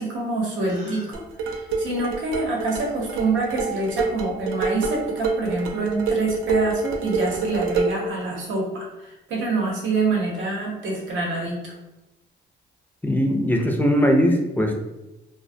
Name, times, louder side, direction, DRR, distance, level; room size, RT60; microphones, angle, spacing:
voice 1, 0.0-11.7, right 3 dB, 70° right, -2 dB, 0.8 m, -26 dB
Gasp, 0.6-1.1, left 1 dB, 35° right, 0.8 m, -37 dB
sound 1, 1.1-8.1, right 4 dB, 90° right, 0.4 m, -27 dB
voice 2, 13.0-14.8, equal, 10° left, 2 dB, 0.4 m, -20 dB
2.4 x 2.1 x 2.6 m, 0.96 s
cardioid pair, 90°, 20 cm